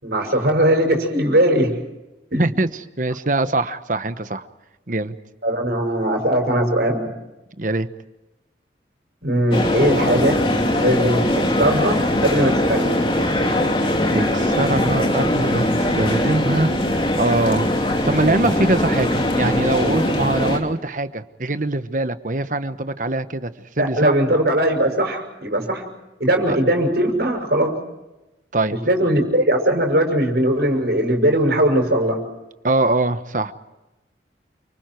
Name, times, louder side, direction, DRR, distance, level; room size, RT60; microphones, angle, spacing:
voice 1, 0.0-1.8 2.3-2.4 5.4-7.0 9.2-13.0 23.8-25.8 26.2-27.8 28.7-32.2, right 1 dB, 65° right, 4 dB, 6.3 m, -19 dB
voice 2, 3.0-4.5 4.9-5.1 7.6-7.9 13.8-23.5 23.8-24.1 26.5-26.6 28.5-28.8 32.6-33.5, right 2 dB, 45° right, 11 dB, 1.1 m, -23 dB
sound 1, 9.5-20.6, left 1 dB, 30° left, 3.2 m, -21 dB
29.5 x 25.0 x 4.6 m, 1.0 s
head